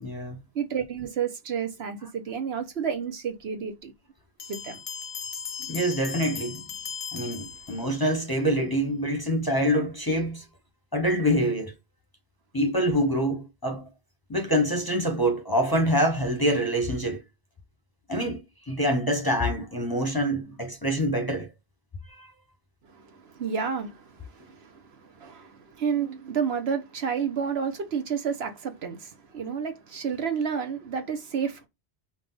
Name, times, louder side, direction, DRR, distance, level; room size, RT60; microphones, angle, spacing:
voice 1, 0.0-0.4 5.6-6.6 7.1-10.4 10.9-11.7 12.5-13.9 14.3-17.2 18.1-21.5 22.2-22.3, equal, 25° left, 0.8 m, -25 dB
voice 2, 0.5-3.9 4.5-4.8 22.8-31.7, right 7 dB, 70° right, 1.2 m, -31 dB
Bell, 4.4-8.2, left 7 dB, 45° left, 0.4 m, -38 dB
5.3 x 2.5 x 3.8 m
omnidirectional pair, 1.1 m